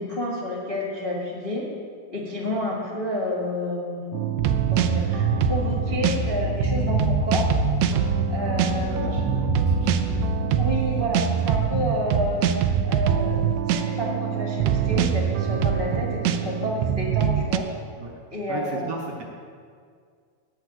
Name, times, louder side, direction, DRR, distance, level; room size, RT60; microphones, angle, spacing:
voice 1, 0.0-1.6 2.1-4.1 4.7-7.4 8.3-9.2 10.6-17.7 18.3-18.9, left 1 dB, 35° left, -5 dB, 0.8 m, -30 dB
sound 1, 4.1-17.6, right 8 dB, 90° right, 1.5 m, -24 dB
sound 2, 5.2-10.4, left 3 dB, 85° left, 2.7 m, -29 dB
voice 2, 8.9-10.3 11.9-12.1 16.6-16.8 18.0-18.1 18.5-19.2, right 4 dB, 65° right, -1 dB, 1.7 m, -37 dB
14.0 x 4.8 x 9.0 m, 2.1 s
omnidirectional pair, 3.8 m